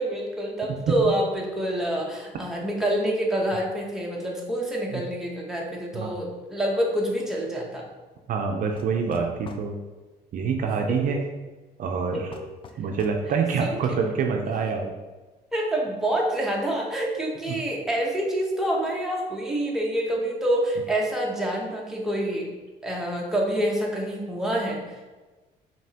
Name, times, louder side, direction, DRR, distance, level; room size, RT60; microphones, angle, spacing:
voice 1, 0.0-7.8 10.9-11.0 12.1-12.2 13.6-14.0 15.5-22.5 22.8-25.0, right 1 dB, 5° right, -3 dB, 0.9 m, -27 dB
voice 2, 8.3-9.8 10.3-11.2 11.8-12.3 12.8-14.9 17.5-17.6, right 5 dB, 55° right, 3 dB, 0.5 m, -26 dB
sound 1, 8.8-9.7 12.3-13.2, left 5 dB, 30° left, 0.4 m, -44 dB
5.2 x 2.9 x 2.8 m, 1.2 s
cardioid pair, 110°, 17 cm